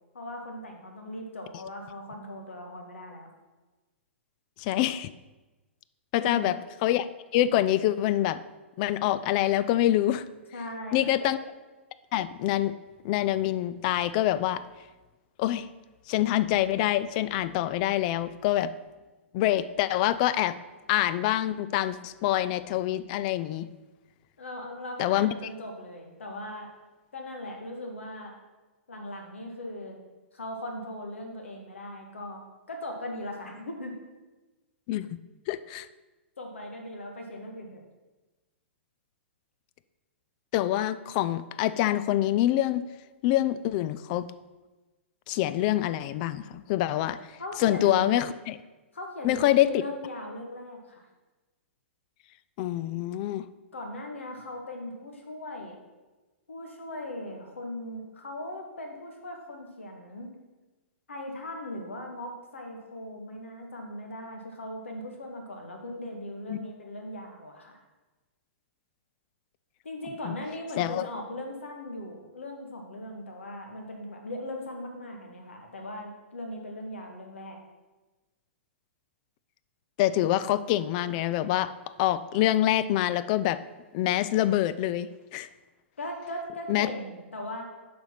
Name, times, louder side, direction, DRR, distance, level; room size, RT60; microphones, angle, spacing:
voice 1, 0.1-3.3 6.2-6.5 10.5-11.3 24.4-26.7 27.1-28.3 28.9-30.0 30.3-32.4 32.7-34.0 36.4-37.8 47.4-48.1 48.9-51.0 53.7-55.8 56.5-60.3 61.1-67.8 69.8-77.6 86.0-87.6, left 1 dB, 75° left, 2 dB, 1.7 m, -39 dB
voice 2, 4.6-5.1 6.1-6.5 6.8-7.1 7.3-8.4 8.8-10.2 10.9-11.4 12.1-12.7 13.0-14.6 15.4-15.7 16.1-18.7 19.3-20.6 20.9-23.7 25.0-25.3 34.9-35.2 35.5-35.9 40.5-42.8 43.2-44.3 45.3-47.2 47.6-48.5 49.2-49.7 52.6-53.4 66.5-66.6 70.2-70.4 70.8-71.0 80.0-81.7 82.0-83.6 83.9-85.5 86.7-86.9, left 13 dB, 40° left, 15 dB, 0.4 m, -25 dB
6.9 x 5.1 x 5.9 m, 1.2 s
figure-of-eight pair, 115°, 7 cm